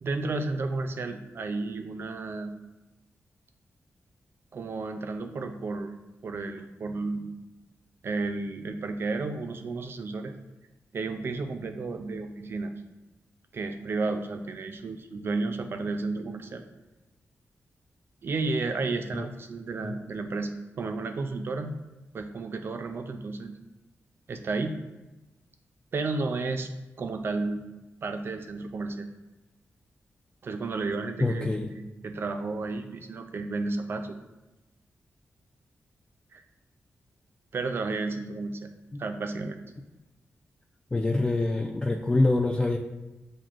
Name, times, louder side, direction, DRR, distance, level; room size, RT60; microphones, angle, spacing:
voice 1, 0.0-2.5 4.5-5.9 6.2-7.3 8.0-10.4 10.9-12.7 13.5-16.6 18.2-21.7 22.1-23.5 24.3-24.8 25.9-26.7 27.0-27.6 28.0-29.1 30.4-34.2 36.3-36.4 37.5-38.7 39.0-39.6, right 3 dB, 55° right, 7 dB, 0.4 m, -32 dB
voice 2, 31.2-31.7 40.9-42.8, left 2 dB, 20° left, 1 dB, 0.3 m, -25 dB
7.4 x 2.6 x 2.4 m, 1.1 s
wide cardioid pair, 105°, 5 cm